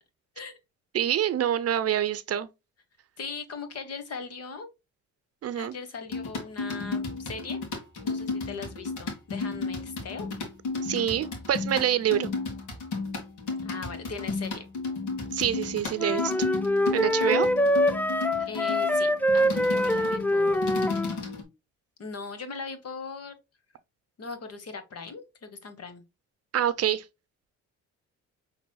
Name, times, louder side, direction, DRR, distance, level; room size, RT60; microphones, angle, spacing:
voice 1, 0.9-2.5 5.4-5.8 10.8-12.3 15.3-16.3 16.9-17.5 26.5-27.0, right 10 dB, 55° right, 0.6 m, -26 dB
voice 2, 3.2-4.7 5.6-7.6 8.0-10.3 13.6-14.7 18.5-20.7 22.0-23.4 24.2-26.0, left 4 dB, 55° left, 1.3 m, -39 dB
sound 1, 6.1-21.4, left 3 dB, 75° left, 1.7 m, -33 dB
sound 2, 16.0-21.2, left 1 dB, 5° left, 0.4 m, -24 dB
6.0 x 3.3 x 2.2 m
cardioid pair, 90°, 30 cm